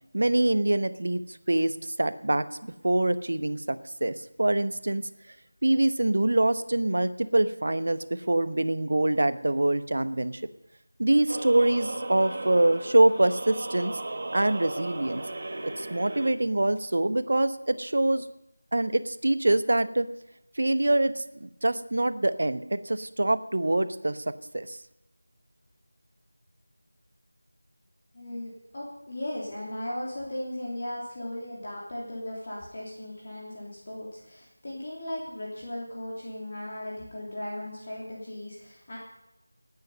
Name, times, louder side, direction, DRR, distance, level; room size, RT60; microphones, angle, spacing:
voice 1, 0.1-5.0 5.6-10.4 11.0-14.0 14.3-15.2 15.6-18.2 18.7-20.1 20.6-24.2 24.5-24.8, right 1 dB, 50° right, 12 dB, 1.0 m, -25 dB
sound 1, 11.3-16.3, right 2 dB, 35° right, 2.0 m, -36 dB
voice 2, 28.1-39.0, left 1 dB, 35° left, -4 dB, 3.2 m, -37 dB
19.0 x 9.6 x 5.4 m, 0.92 s
figure-of-eight pair, 170°, 0 cm